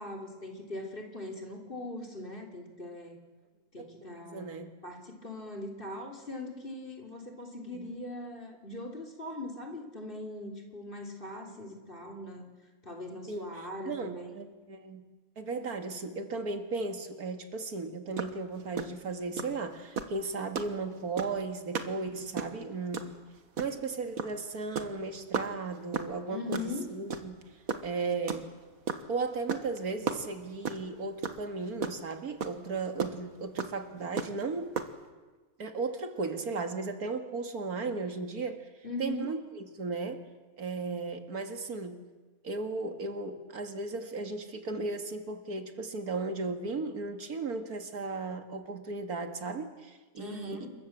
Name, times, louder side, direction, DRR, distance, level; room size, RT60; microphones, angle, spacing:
voice 1, 0.0-3.2 3.7-12.5 12.8-14.3 26.3-26.9 38.8-39.3 50.2-50.7, left 2 dB, 35° left, 2 dB, 3.6 m, -40 dB
voice 2, 3.8-4.8 7.7-7.9 11.5-11.6 13.3-15.0 15.4-23.2 23.6-27.4 27.8-28.5 29.1-34.7 35.6-38.7 39.0-40.2 40.6-42.0 42.4-50.7, right 3 dB, 90° right, 6 dB, 2.4 m, -36 dB
sound 1, 18.2-18.3 18.6-18.8 19.4-19.5 20.0-20.2 20.6-20.7 21.2-21.4 21.7-21.9 22.2-22.6 22.9-23.1 23.6-23.8 24.2-24.4 24.6-24.9 25.3-25.5 25.9-26.1 26.5-26.7 27.1-27.4 27.7-29.1 29.5-29.8 30.1-30.9 31.2-31.4 31.7-32.1 32.4-32.5 33.0-33.1 33.6-33.7 34.2-34.4 34.8-34.9, right 6 dB, 70° right, 1.9 m, -32 dB
28.0 x 23.0 x 7.4 m, 1.3 s
omnidirectional pair, 1.5 m